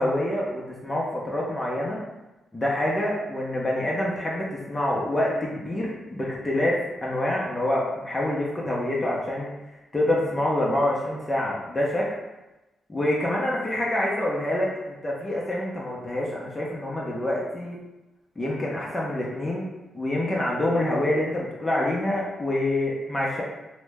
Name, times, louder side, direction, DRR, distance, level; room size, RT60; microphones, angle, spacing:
voice 1, 0.0-2.0 2.5-9.5 9.9-12.1 12.9-17.8 18.4-19.6 19.9-23.4, left 1 dB, 25° left, -4 dB, 0.7 m, -26 dB
2.8 x 2.1 x 3.4 m, 1.0 s
cardioid pair, 65°, 0 cm